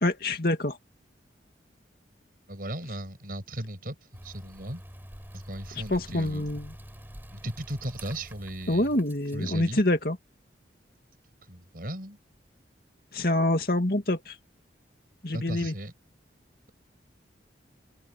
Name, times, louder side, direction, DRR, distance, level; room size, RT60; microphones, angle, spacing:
voice 1, 0.0-0.8 5.9-6.7 8.7-10.2 13.1-14.4 15.2-15.7, left 1 dB, 50° left, 2.5 m, -26 dB
voice 2, 2.5-4.0 4.2-4.8 5.3-6.6 7.3-8.9 9.3-9.8 11.5-12.2 15.3-15.9, right 1 dB, 50° right, 7.3 m, -36 dB
sound 1, 4.1-9.5, equal, 10° right, 5.1 m, -46 dB
open air
head